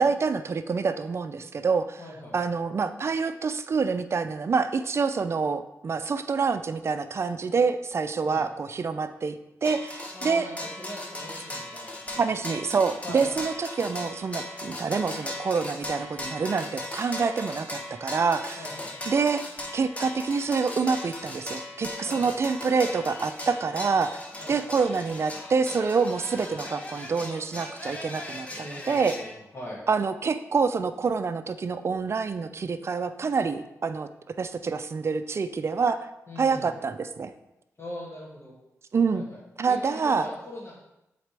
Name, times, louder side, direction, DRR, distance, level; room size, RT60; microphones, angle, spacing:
voice 1, 0.0-2.0 2.3-9.3 9.6-10.5 12.1-18.6 19.1-19.4 19.7-24.2 24.5-29.1 29.9-36.1 36.4-37.3 38.9-39.2 39.6-40.3, right 5 dB, 50° right, 11 dB, 0.4 m, -27 dB
voice 2, 2.0-2.3 8.2-8.4 10.1-12.4 13.0-13.4 18.6-18.9 22.0-22.4 24.4-24.6 28.6-29.8 36.3-36.7 37.8-38.5 39.1-40.8, left 1 dB, 50° left, -11 dB, 2.3 m, -41 dB
sound 1, 9.6-29.4, left 1 dB, 25° left, 0.9 m, -38 dB
7.7 x 4.1 x 3.4 m, 0.90 s
cardioid pair, 85°, 6 cm